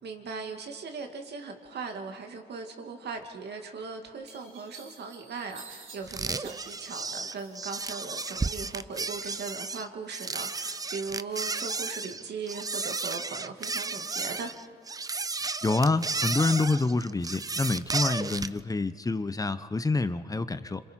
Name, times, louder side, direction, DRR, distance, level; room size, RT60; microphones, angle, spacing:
voice 1, 0.0-14.5, right 4 dB, 55° right, 4 dB, 2.3 m, -39 dB
sound 1, 3.5-3.6 4.2-7.9 8.3-9.0, right 5 dB, 75° right, 3.7 m, -50 dB
sound 2, 6.1-18.6, right 4 dB, 20° right, 0.5 m, -33 dB
voice 2, 15.6-20.8, left 3 dB, 20° left, 12 dB, 0.8 m, -27 dB
26.5 x 26.5 x 4.5 m, 2.3 s
cardioid pair, 90°, 20 cm